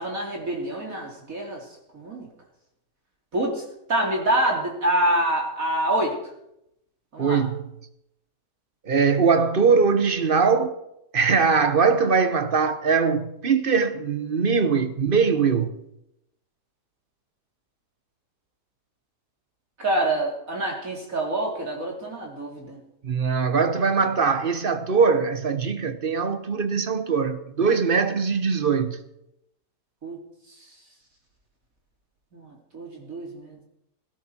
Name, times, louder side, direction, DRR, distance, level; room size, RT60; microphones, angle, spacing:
voice 1, 0.0-1.6 1.9-2.3 3.3-3.6 3.9-6.1 7.1-7.4 19.8-22.8 30.0-30.2 32.3-33.5, right 1 dB, 55° right, 3.1 m, -26 dB
voice 2, 7.2-7.6 8.8-10.7 11.1-15.7 23.0-29.0, right 5 dB, 35° right, 1.1 m, -21 dB
17.5 x 16.5 x 4.5 m
omnidirectional pair, 1.8 m